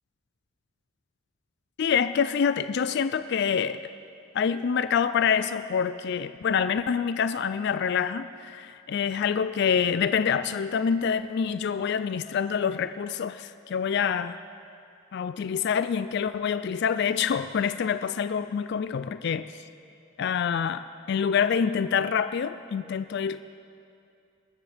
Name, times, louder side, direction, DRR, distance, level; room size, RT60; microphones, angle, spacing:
voice 1, 1.8-3.8 4.3-14.4 15.1-19.5 20.2-23.4, left 7 dB, 55° left, 12 dB, 0.3 m, -26 dB
21.5 x 13.5 x 3.4 m, 2.5 s
head